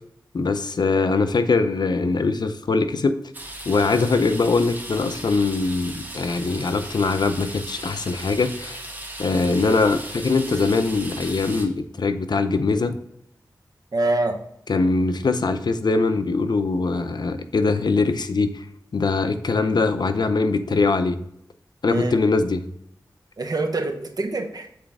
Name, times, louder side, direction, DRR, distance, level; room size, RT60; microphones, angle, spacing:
voice 1, 0.3-3.2 3.7-8.8 9.2-12.9 14.7-18.6 18.9-21.2 21.8-22.7, left 3 dB, 65° left, 10 dB, 0.6 m, -22 dB
sound 1, 3.3-11.6, right 1 dB, 25° right, 1.3 m, -37 dB
voice 2, 13.9-14.4 21.9-22.2 23.4-24.7, right 2 dB, 55° right, 4 dB, 1.0 m, -25 dB
7.5 x 4.1 x 3.5 m, 0.75 s
wide cardioid pair, 65°, 8 cm